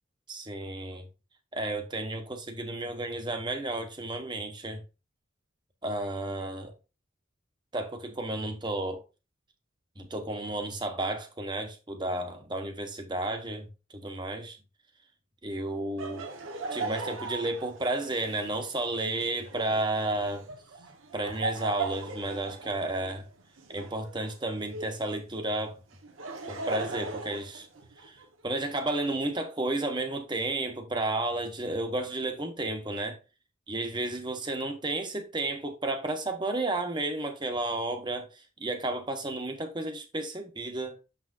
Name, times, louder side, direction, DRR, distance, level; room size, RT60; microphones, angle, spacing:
voice 1, 0.3-1.0 1.5-4.8 5.8-6.7 7.7-9.0 10.0-14.6 15.4-16.3 16.7-20.5 21.1-23.3 23.7-25.8 26.5-27.7 28.0-33.2 33.7-41.0, right 2 dB, 20° right, 1.1 m, -32 dB
Laughter, 16.0-25.0 25.9-28.3, right 3 dB, 85° right, 1.3 m, -39 dB
7.1 x 5.9 x 2.6 m
head